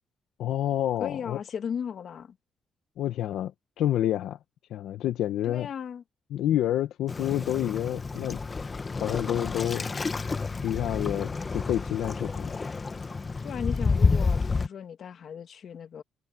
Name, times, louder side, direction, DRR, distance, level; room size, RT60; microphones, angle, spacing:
voice 1, 0.4-1.4 3.0-3.5 3.8-4.4 4.7-5.7 6.3-8.4 9.0-9.9 10.6-12.6, left 12 dB, 80° left, 1.0 m, -28 dB
voice 2, 1.0-2.4 5.4-6.0 13.4-16.0, left 7 dB, 60° left, 1.6 m, -36 dB
Waves surf, 7.1-14.7, left 4 dB, 30° left, 1.4 m, -29 dB
cardioid pair, 90°, 0 cm